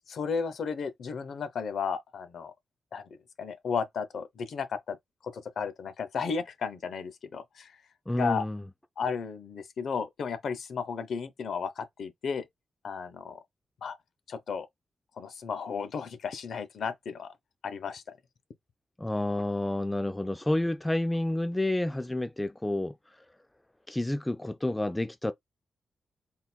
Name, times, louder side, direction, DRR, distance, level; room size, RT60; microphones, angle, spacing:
voice 1, 0.1-2.5 2.9-3.0 3.4-5.0 5.3-7.8 8.1-8.4 9.0-12.5 12.8-13.4 13.8-13.9 14.3-14.7 15.2-17.3 17.6-18.0, left 6 dB, 70° left, 0.7 m, -34 dB
voice 2, 8.1-8.6 19.0-22.9 23.9-25.3, left 1 dB, 10° left, 0.3 m, -29 dB
3.7 x 2.1 x 4.3 m
cardioid pair, 100°, 0 cm